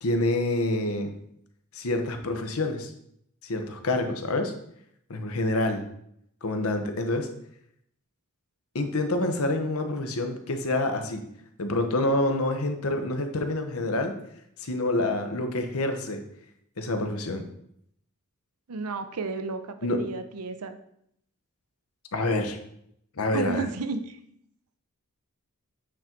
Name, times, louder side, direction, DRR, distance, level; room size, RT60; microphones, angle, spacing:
voice 1, 0.0-1.1 1.7-2.9 3.4-4.5 5.1-5.8 6.4-7.3 8.7-11.2 11.6-14.1 14.6-16.2 16.8-17.4 19.8-20.0 22.1-22.6 23.2-23.6, left 2 dB, 70° left, 6 dB, 1.0 m, -27 dB
voice 2, 18.7-20.8 23.3-24.2, right 4 dB, 85° right, 9 dB, 0.7 m, -32 dB
8.5 x 3.9 x 4.4 m, 0.72 s
head